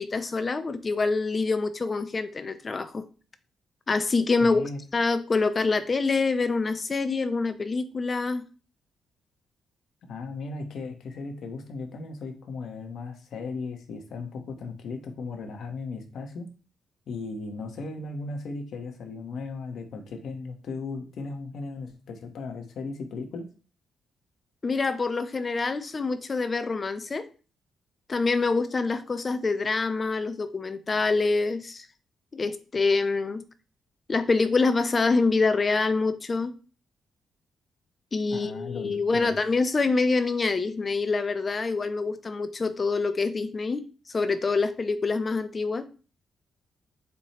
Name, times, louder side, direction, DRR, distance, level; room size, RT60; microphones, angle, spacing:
voice 1, 0.0-3.0 3.9-4.6 4.9-8.4 24.6-27.2 28.1-31.9 32.3-33.4 34.1-36.5 38.1-45.9, left 3 dB, 40° left, 11 dB, 0.6 m, -26 dB
voice 2, 4.4-4.8 10.0-16.5 17.1-23.5 38.3-39.4, left 3 dB, 65° left, 5 dB, 0.9 m, -36 dB
4.5 x 2.7 x 4.2 m, 0.37 s
hypercardioid pair, 40°, 0 cm